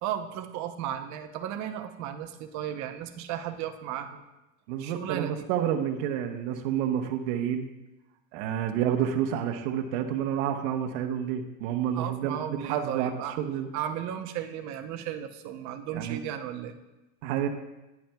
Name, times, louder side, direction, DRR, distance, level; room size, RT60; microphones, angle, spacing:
voice 1, 0.0-4.2 4.8-5.5 11.9-13.4 13.7-16.7, right 10 dB, 40° right, 6 dB, 0.8 m, -35 dB
voice 2, 4.7-7.7 8.3-13.7 15.9-16.2 17.2-17.5, right 9 dB, 65° right, 5 dB, 0.9 m, -29 dB
10.5 x 8.4 x 2.3 m, 1.0 s
supercardioid pair, 140°, 43 cm